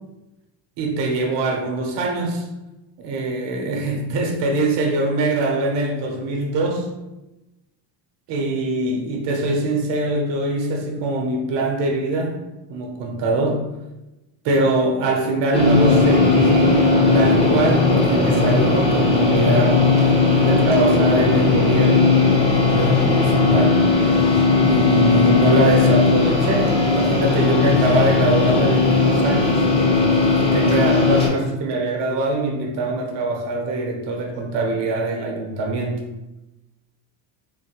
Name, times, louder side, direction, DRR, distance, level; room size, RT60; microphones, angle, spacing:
voice 1, 0.8-2.5 3.0-6.9 8.3-12.4 12.7-13.7 14.4-19.8 20.4-22.2 22.4-23.8 24.6-29.7 30.4-36.0, right 2 dB, 60° right, 2 dB, 0.8 m, -23 dB
sound 1, 15.5-31.3, left 3 dB, 15° left, 0.6 m, -17 dB
3.9 x 2.1 x 2.9 m, 0.99 s
cardioid pair, 145°, 48 cm